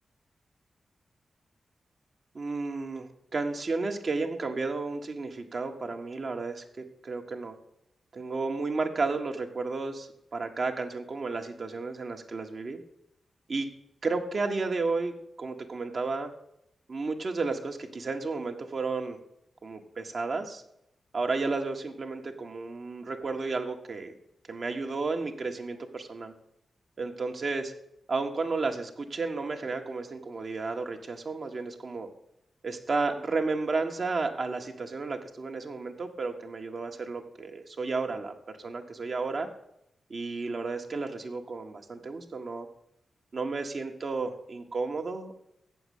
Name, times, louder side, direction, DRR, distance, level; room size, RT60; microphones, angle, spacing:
voice 1, 2.3-6.6 7.0-7.5 8.1-12.8 13.5-13.7 14.0-16.3 16.9-19.2 19.6-20.6 21.1-24.1 24.5-26.3 27.0-27.7 28.1-32.1 32.6-39.5 40.1-42.7 43.3-45.4, right 3 dB, 55° right, 4 dB, 1.4 m, -32 dB
8.2 x 7.0 x 8.3 m, 0.79 s
cardioid pair, 70°, 0 cm